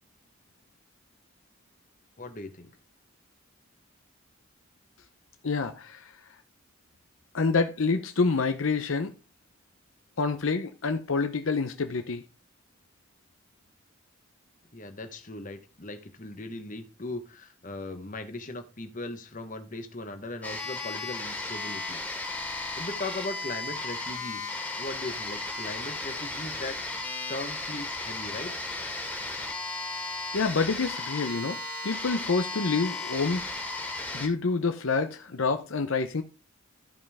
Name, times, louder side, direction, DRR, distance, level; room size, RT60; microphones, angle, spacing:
voice 1, 2.2-2.7 14.7-22.0 22.8-26.8 27.3-28.5, left 2 dB, 35° left, 1.2 m, -38 dB
voice 2, 5.4-6.2 7.3-9.1 10.2-12.2 30.3-33.4 34.1-36.2, left 4 dB, 70° left, 0.7 m, -27 dB
sound 1, 20.4-34.3, left 2 dB, 10° left, 2.0 m, -35 dB
14.0 x 5.4 x 3.5 m
head